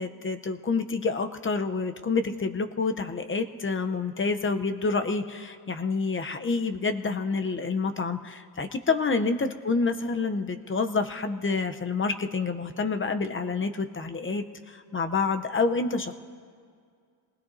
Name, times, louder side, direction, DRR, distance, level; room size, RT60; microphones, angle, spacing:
voice 1, 0.0-16.1, left 4 dB, 30° left, 8 dB, 0.7 m, -28 dB
26.5 x 19.5 x 2.7 m, 2.2 s
cardioid pair, 110°, 44 cm